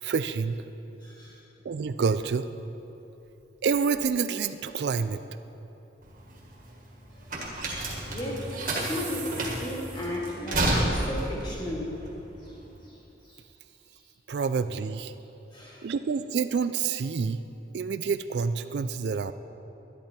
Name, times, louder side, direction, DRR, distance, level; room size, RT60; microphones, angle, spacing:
voice 1, 0.0-0.5 1.6-2.5 3.6-5.2 14.3-15.1 15.8-17.4 17.7-19.3, right 5 dB, 65° right, 12 dB, 0.3 m, -28 dB
voice 2, 1.0-1.4 7.1-7.2 8.1-12.0 12.4-12.6 12.8-13.4 15.5-15.9, left 1 dB, 25° left, -4 dB, 2.1 m, -36 dB
sound 1, 6.0-12.8, right 1 dB, 45° right, 1.7 m, -30 dB
12.0 x 11.0 x 4.4 m, 3.0 s
head